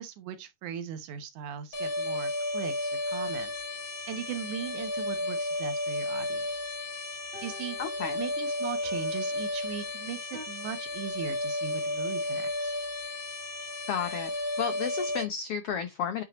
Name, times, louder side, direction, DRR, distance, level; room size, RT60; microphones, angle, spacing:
voice 1, 0.0-3.5 4.1-6.5 7.4-7.8 8.2-12.7, right 9 dB, 70° right, 2.3 m, -39 dB
sound 1, 1.7-15.2, left 1 dB, 40° left, 2.7 m, -33 dB
sound 2, 3.1-3.2 7.3-10.5, left 1 dB, 25° right, 1.3 m, -50 dB
voice 2, 7.8-8.2 13.9-14.3 14.6-16.2, left 7 dB, 75° left, 1.3 m, -32 dB
9.2 x 5.7 x 3.0 m
omnidirectional pair, 3.8 m